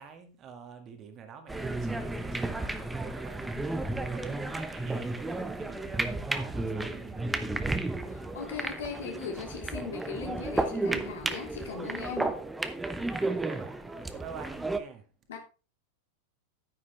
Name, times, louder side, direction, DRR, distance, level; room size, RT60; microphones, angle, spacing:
voice 1, 0.0-7.8 13.2-15.1, right 7 dB, 30° right, 1.8 m, -47 dB
sound 1, 1.5-14.8, right 2 dB, 5° right, 0.9 m, -33 dB
voice 2, 8.1-12.4 15.3-15.4, left 5 dB, 60° left, 2.8 m, -39 dB
9.9 x 9.8 x 3.4 m
figure-of-eight pair, 90°, 0 cm